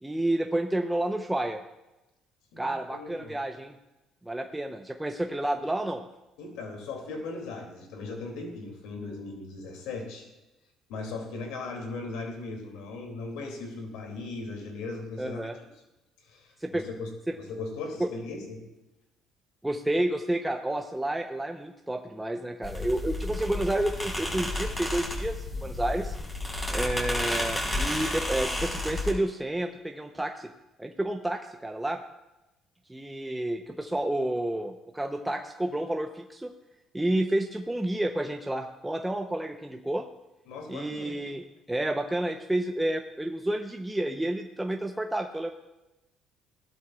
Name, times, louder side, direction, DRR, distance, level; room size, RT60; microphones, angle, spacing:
voice 1, 0.0-1.6 2.6-3.8 4.3-6.0 15.2-15.6 16.6-16.8 17.3-17.4 18.0-18.1 19.6-26.1 26.7-30.5 30.8-32.0 32.9-36.5 36.9-40.1 40.7-45.5, right 1 dB, 10° right, 4 dB, 0.7 m, -30 dB
voice 2, 2.5-3.3 6.4-10.3 10.9-15.5 16.3-17.1 17.4-18.6 40.5-41.2, left 3 dB, 80° left, 2 dB, 2.5 m, -38 dB
sound 1, 22.6-29.1, left 1 dB, 20° left, 4.6 m, -31 dB
17.0 x 12.0 x 2.4 m, 0.99 s
supercardioid pair, 75°, 0 cm